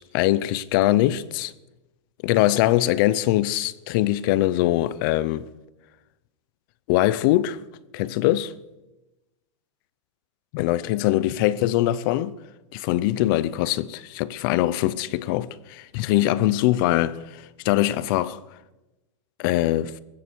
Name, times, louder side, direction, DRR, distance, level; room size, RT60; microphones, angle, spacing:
voice 1, 0.1-1.5 2.2-5.4 6.9-7.6 7.9-8.5 10.5-12.4 12.7-18.4 19.4-19.9, left 15 dB, 45° left, 0.7 m, -22 dB
19.0 x 16.0 x 4.7 m
supercardioid pair, 160°, 16 cm